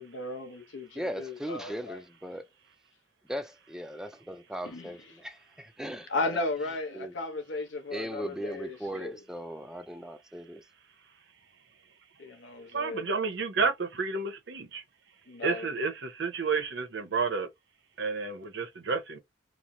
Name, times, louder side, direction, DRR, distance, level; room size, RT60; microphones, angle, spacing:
voice 1, 0.0-2.0 4.6-4.9 6.1-9.2 12.2-13.0 15.3-15.7, left 2 dB, 70° left, 0.7 m, -35 dB
voice 2, 0.9-2.5 3.3-6.4 6.9-7.1 7.9-10.7, equal, 5° right, 0.4 m, -38 dB
voice 3, 12.7-14.8 15.4-17.5 18.0-19.2, right 4 dB, 65° right, 0.8 m, -30 dB
3.0 x 2.0 x 2.6 m
head